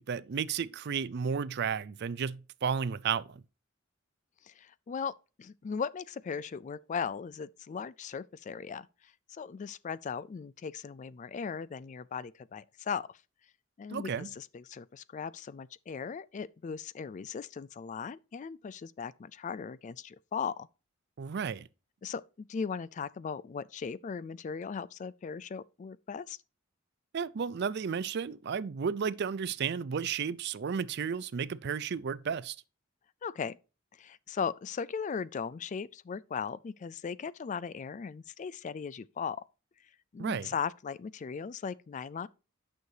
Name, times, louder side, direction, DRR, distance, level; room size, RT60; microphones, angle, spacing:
voice 1, 0.0-3.4 13.9-14.3 21.2-21.7 27.1-32.6 40.2-40.5, right 6 dB, 55° right, 0.4 m, -33 dB
voice 2, 4.4-8.9 9.3-13.2 13.8-20.7 22.0-26.4 33.2-33.6 34.0-39.4 40.1-42.3, left 6 dB, 35° left, 0.3 m, -38 dB
9.4 x 6.4 x 2.7 m
head